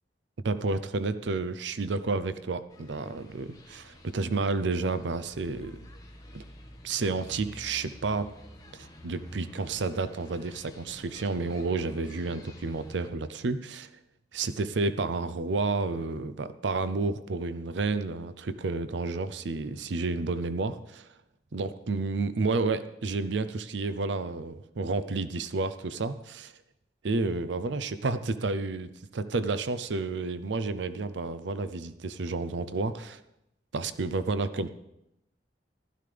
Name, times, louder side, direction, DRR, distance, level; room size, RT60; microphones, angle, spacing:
voice 1, 0.4-5.9 6.3-6.4 6.8-8.3 8.7-13.9 14.3-21.1 21.5-26.5 27.0-33.2 33.7-34.7, right 3 dB, 85° right, 13 dB, 0.6 m, -31 dB
sound 1, 2.7-13.1, equal, 20° left, 1.3 m, -49 dB
15.5 x 12.5 x 3.4 m, 0.84 s
head